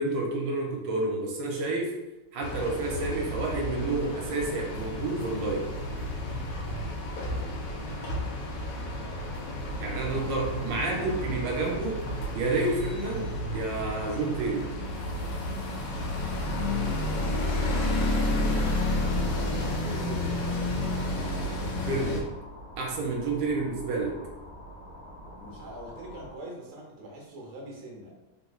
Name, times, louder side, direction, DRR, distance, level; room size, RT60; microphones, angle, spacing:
voice 1, 0.0-1.9 2.3-5.7 9.8-12.0 12.3-14.6 21.9-22.3 22.8-24.2, right 2 dB, 80° right, 0 dB, 1.3 m, -29 dB
sound 1, 2.4-22.2, left 1 dB, 80° left, 1.3 m, -31 dB
voice 2, 7.5-8.0 10.2-10.3 10.6-11.3 15.8-16.1 18.8-20.6 23.4-23.5 25.3-28.1, right 1 dB, 55° right, -1 dB, 1.0 m, -44 dB
sound 2, 14.8-26.4, left 1 dB, 60° left, 1.1 m, -46 dB
3.4 x 3.0 x 2.2 m, 0.99 s
omnidirectional pair, 2.0 m